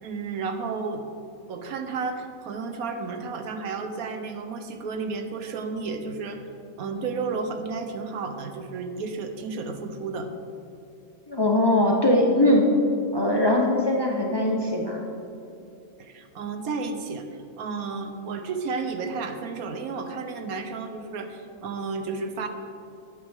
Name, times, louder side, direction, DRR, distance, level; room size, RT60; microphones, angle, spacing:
voice 1, 0.0-1.0 1.5-6.5 6.8-10.3 16.0-22.5, right 4 dB, 85° right, 6 dB, 1.3 m, -32 dB
voice 2, 11.3-12.7 13.1-15.0, left 1 dB, 25° left, 0 dB, 0.6 m, -21 dB
11.5 x 8.3 x 3.5 m, 2.6 s
omnidirectional pair, 1.5 m